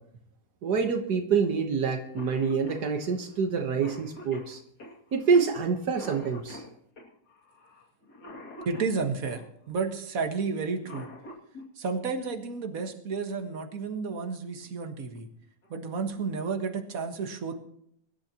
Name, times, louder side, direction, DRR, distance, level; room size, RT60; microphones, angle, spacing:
voice 1, 0.6-4.6 5.1-6.6, right 5 dB, 80° right, 4 dB, 1.8 m, -26 dB
Cough, 1.8-1.9 2.2-9.5 10.6-11.7 13.3-13.4 14.4-14.7 15.2-15.3 15.6-16.1, left 2 dB, 80° left, 3.1 m, -46 dB
voice 2, 8.7-11.1 11.8-15.3 15.7-17.5, right 4 dB, 60° right, 4 dB, 2.0 m, -32 dB
24.0 x 12.0 x 3.0 m, 0.70 s
omnidirectional pair, 1.7 m